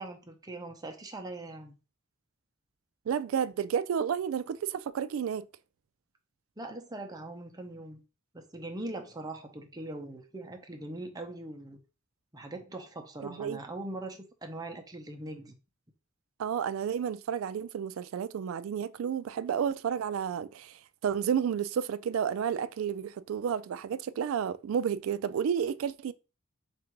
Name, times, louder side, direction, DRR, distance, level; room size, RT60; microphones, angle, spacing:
voice 1, 0.0-1.7 6.6-8.0 8.3-11.8 12.3-15.5, right 2 dB, 20° right, 0.7 m, -41 dB
voice 2, 3.1-5.5 13.2-13.6 16.4-26.1, right 8 dB, 80° right, 0.3 m, -31 dB
3.6 x 2.5 x 4.4 m
head